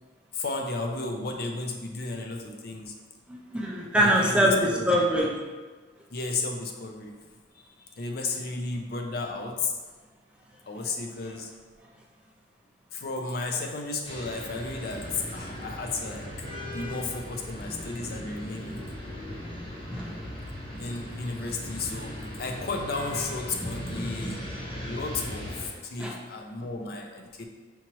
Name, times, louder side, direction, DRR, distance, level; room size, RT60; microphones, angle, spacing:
voice 1, 0.3-2.9 3.9-4.9 6.1-7.1 7.8-9.7 10.7-11.5 12.9-16.3 16.6-18.8 20.8-24.4 24.8-27.5, left 3 dB, 55° left, 3 dB, 0.5 m, -33 dB
voice 2, 3.3-4.6 4.9-5.3 19.9-20.1 26.0-26.1, equal, 5° right, -2 dB, 0.4 m, -23 dB
sound 1, 14.0-25.7, equal, 30° left, 0.8 m, -38 dB
5.6 x 3.0 x 2.9 m, 1.4 s
head